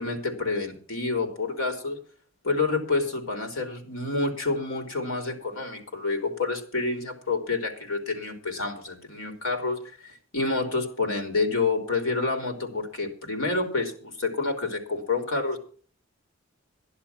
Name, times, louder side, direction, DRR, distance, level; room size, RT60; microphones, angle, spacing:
voice 1, 0.0-2.0 2.4-15.6, left 3 dB, 80° left, 4 dB, 3.6 m, -28 dB
13.0 x 11.0 x 5.8 m, 0.43 s
head